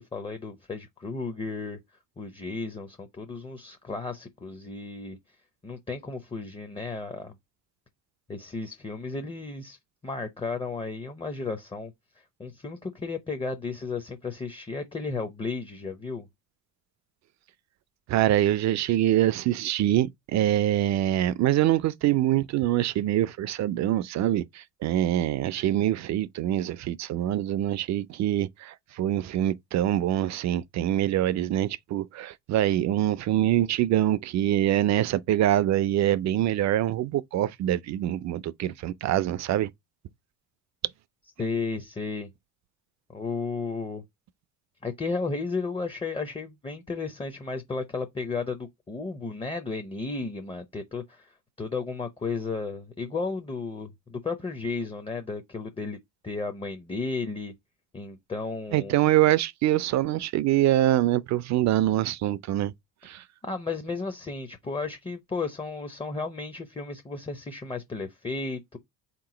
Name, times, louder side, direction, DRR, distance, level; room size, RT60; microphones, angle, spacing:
voice 1, 0.0-1.8 2.2-5.2 5.6-7.4 8.3-16.3 41.4-42.3 43.1-44.0 44.8-56.0 56.2-57.5 57.9-59.0 63.4-68.8, left 4 dB, 15° left, 0.6 m, -34 dB
voice 2, 18.1-39.7 58.7-62.7 63.0-63.2, right 13 dB, 45° right, 0.4 m, -24 dB
3.6 x 3.0 x 4.8 m
supercardioid pair, 95°, 40 cm